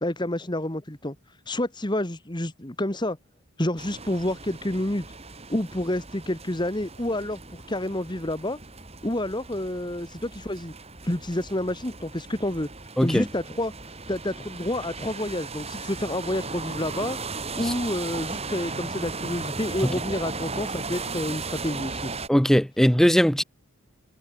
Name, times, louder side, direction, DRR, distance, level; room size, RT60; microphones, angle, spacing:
voice 1, 0.0-1.1 1.5-3.2 3.6-5.1 5.5-8.6 9.0-10.7 11.0-12.7 13.0-13.7 14.1-17.2 17.5-22.1, left 1 dB, 20° left, 1.6 m, -29 dB
sound 1, 3.8-22.3, right 3 dB, 30° right, 3.8 m, -36 dB
voice 2, 13.0-13.3 17.6-17.7 22.3-23.4, equal, ahead, 0.5 m, -19 dB
head